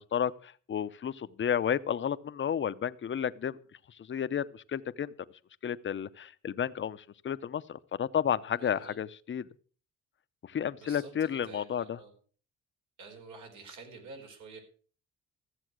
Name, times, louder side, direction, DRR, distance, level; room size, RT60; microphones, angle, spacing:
voice 1, 0.0-3.6 4.0-5.1 5.6-9.5 10.5-12.0, left 8 dB, 40° left, 14 dB, 0.7 m, -32 dB
voice 2, 8.6-9.0 10.8-12.1 13.0-14.6, right 4 dB, 80° right, 3 dB, 4.6 m, -49 dB
14.5 x 7.7 x 6.2 m, 0.43 s
cardioid pair, 90°, 30 cm